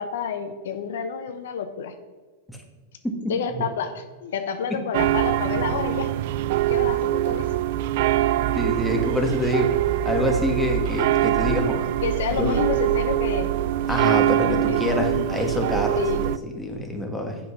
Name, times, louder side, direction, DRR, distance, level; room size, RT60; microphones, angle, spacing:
voice 1, 0.0-1.9 3.3-6.1 6.7-7.5 12.0-13.5 14.7-15.4 15.9-16.2, left 6 dB, 75° left, 8 dB, 0.8 m, -29 dB
sound 1, 4.9-16.4, right 14 dB, 60° right, 0.3 m, -23 dB
voice 2, 8.5-9.7 10.0-11.9 12.3-12.6 13.9-17.4, equal, 5° left, 2 dB, 1.5 m, -26 dB
7.7 x 5.6 x 5.7 m, 1.4 s
hypercardioid pair, 125°, 0 cm